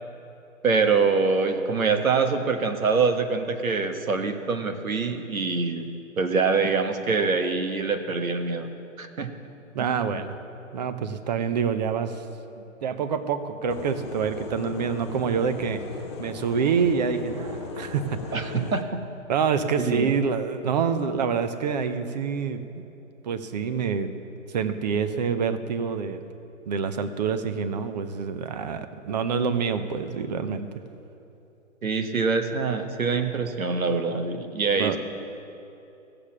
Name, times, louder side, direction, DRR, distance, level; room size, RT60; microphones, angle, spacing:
voice 1, 0.6-5.9 6.2-8.7 9.0-9.3 9.8-9.9 18.3-19.0 19.8-20.1 31.8-35.0, right 4 dB, 85° right, 6 dB, 1.4 m, -24 dB
voice 2, 9.7-10.4 10.7-12.2 12.8-15.8 16.2-18.5 19.3-22.6 23.2-24.1 24.5-26.2 26.7-30.7 34.8-35.0, right 6 dB, 30° right, 10 dB, 0.7 m, -26 dB
sound 1, 13.7-18.8, left 4 dB, 20° left, 0.5 m, -37 dB
16.0 x 6.8 x 7.3 m, 2.9 s
hypercardioid pair, 140°, 40 cm